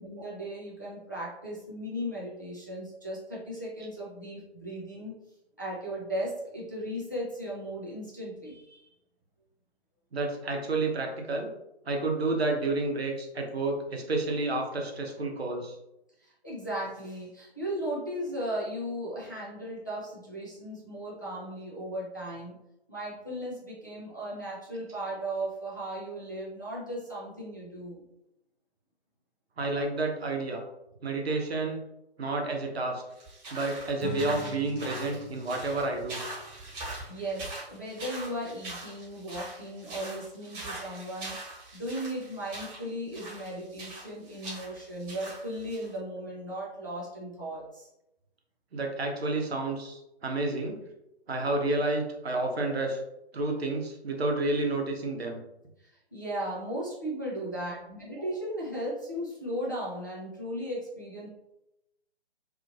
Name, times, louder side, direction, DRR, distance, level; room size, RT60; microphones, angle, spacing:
voice 1, 0.0-5.2 5.6-8.8 16.2-22.6 22.9-28.0 37.1-47.9 55.8-61.3, right 1 dB, 20° left, -7 dB, 0.3 m, -36 dB
voice 2, 10.1-11.5 11.8-15.8 29.6-30.6 31.0-31.8 32.2-33.0 33.5-36.2 48.7-50.8 51.3-53.0 53.3-55.4, right 2 dB, 70° right, 2 dB, 0.8 m, -30 dB
sound 1, 33.1-45.9, right 2 dB, 20° right, 1.3 m, -42 dB
Acoustic guitar / Strum, 34.0-37.3, equal, 55° left, 0.8 m, -43 dB
2.8 x 2.5 x 2.4 m, 0.89 s
figure-of-eight pair, 140°, 32 cm